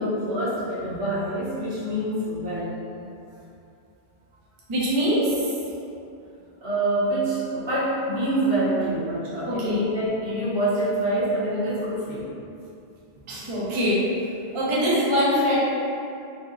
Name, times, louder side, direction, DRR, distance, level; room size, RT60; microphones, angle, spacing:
voice 1, 0.0-2.7 6.6-12.3, right 1 dB, 65° right, -11 dB, 1.2 m, -26 dB
voice 2, 4.7-5.6 9.5-9.8 13.3-14.0 14.5-15.6, equal, 40° right, -8 dB, 0.5 m, -23 dB
2.9 x 2.7 x 2.5 m, 2.6 s
omnidirectional pair, 1.1 m